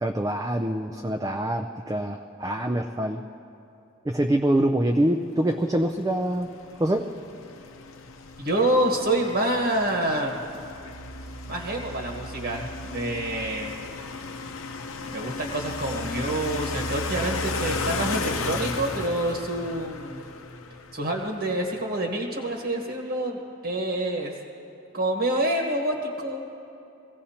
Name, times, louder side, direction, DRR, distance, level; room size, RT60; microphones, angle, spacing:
voice 1, 0.0-3.2 4.1-6.5 6.8-7.1, right 1 dB, 15° right, 3 dB, 0.4 m, -25 dB
sound 1, 5.6-21.8, left 4 dB, 90° left, 0.8 m, -35 dB
voice 2, 8.4-10.4 11.5-13.8 15.1-20.2 20.9-24.3 24.9-26.4, right 1 dB, 55° right, 0 dB, 1.3 m, -27 dB
sound 2, 10.6-14.5 14.9-19.4, right 3 dB, 20° left, 0.8 m, -39 dB
23.0 x 16.5 x 2.9 m, 2.8 s
head